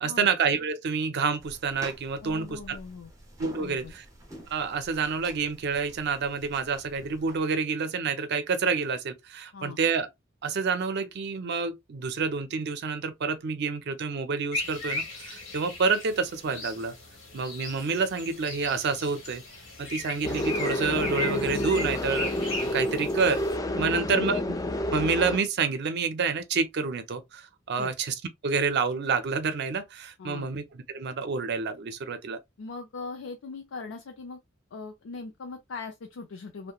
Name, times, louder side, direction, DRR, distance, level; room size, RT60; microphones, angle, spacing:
voice 1, 0.0-2.8 3.4-4.0 4.5-10.1 10.4-16.9 17.3-19.4 19.8-22.3 22.7-23.4 23.8-24.6 24.9-28.1 28.4-32.4, right 5 dB, 55° right, 0.5 m, -28 dB
sound 1, 1.4-7.4, right 1 dB, 15° right, 0.9 m, -47 dB
voice 2, 2.2-3.1 3.6-3.9 9.5-9.8 23.8-24.0 27.8-27.9 30.2-30.5 32.6-34.4 34.7-36.7, left 4 dB, 85° left, 0.4 m, -40 dB
sound 2, 14.5-23.6, left 2 dB, 65° left, 1.3 m, -38 dB
sound 3, 20.2-25.4, left 1 dB, 20° left, 0.3 m, -29 dB
2.9 x 2.1 x 2.3 m
head